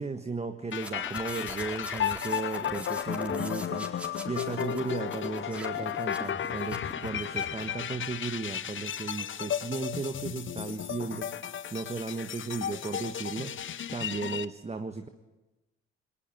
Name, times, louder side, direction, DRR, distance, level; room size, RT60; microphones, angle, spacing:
voice 1, 0.0-11.4 11.7-13.5 13.9-15.1, right 4 dB, 20° right, 8 dB, 1.5 m, -35 dB
sound 1, 0.7-14.5, left 9 dB, 40° left, 0.9 m, -34 dB
sound 2, 0.7-7.7, equal, 5° right, 4.3 m, -44 dB
19.5 x 19.0 x 9.2 m, 1.1 s
hypercardioid pair, 65°, 30 cm